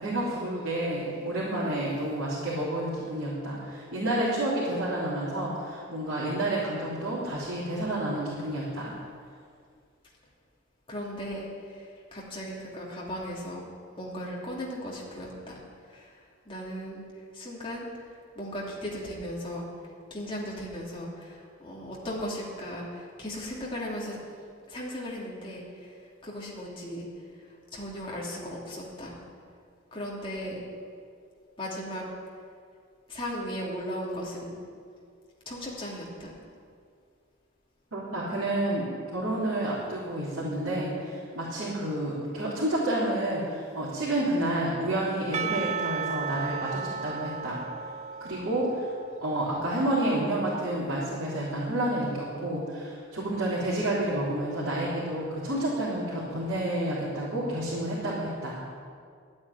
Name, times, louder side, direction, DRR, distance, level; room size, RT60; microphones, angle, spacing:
voice 1, 0.0-8.9 37.9-47.6 48.2-48.9 49.2-58.6, right 1 dB, 75° right, -9 dB, 3.5 m, -30 dB
voice 2, 10.9-13.7 14.0-15.6 15.9-16.1 16.5-17.0 17.3-17.9 18.3-19.7 20.1-24.2 24.7-27.1 27.7-29.2 29.9-30.6 31.6-32.0 33.1-34.6 35.4-36.3, equal, 25° left, -4 dB, 2.9 m, -37 dB
Percussion / Church bell, 45.3-49.7, right 6 dB, 30° right, 0.3 m, -35 dB
12.0 x 8.7 x 10.0 m, 2.2 s
head